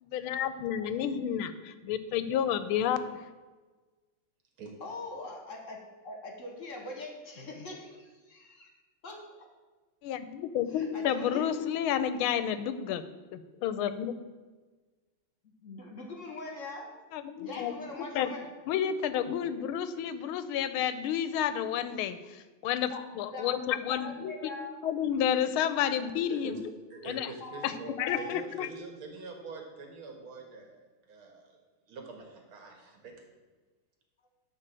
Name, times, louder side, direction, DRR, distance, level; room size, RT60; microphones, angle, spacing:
voice 1, 0.0-3.2 10.0-13.0 13.3-14.1 17.1-17.7 18.0-18.3 18.7-24.3 24.8-26.6 27.0-27.3 27.6-28.7, left 9 dB, 85° left, 12 dB, 1.5 m, -31 dB
voice 2, 4.8-8.7 9.0-9.4 10.7-11.5 15.6-16.9 17.4-18.4 19.3-19.4 22.9-23.0 23.3-23.6 23.9-24.8 27.4-28.3, left 2 dB, 40° left, 1 dB, 1.4 m, -42 dB
voice 3, 26.9-31.6 31.9-33.1, right 3 dB, 80° right, 3 dB, 2.4 m, -45 dB
11.5 x 4.0 x 7.5 m, 1.3 s
omnidirectional pair, 2.3 m